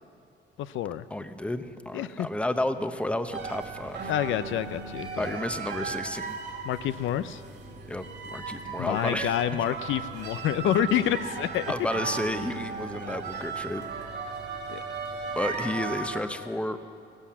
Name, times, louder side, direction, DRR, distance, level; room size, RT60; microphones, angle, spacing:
voice 1, 0.6-1.1 1.9-2.3 4.1-5.4 6.6-7.4 8.8-11.7 14.7-14.8, left 11 dB, 80° left, 13 dB, 0.5 m, -28 dB
voice 2, 1.1-4.1 5.2-6.3 7.9-8.1 8.3-9.3 11.7-13.8 15.3-16.8, left 1 dB, 5° left, 10 dB, 0.8 m, -31 dB
sound 1, 3.3-16.2, right 5 dB, 60° right, 1.8 m, -36 dB
16.5 x 11.5 x 7.3 m, 2.5 s
cardioid pair, 90°, 20 cm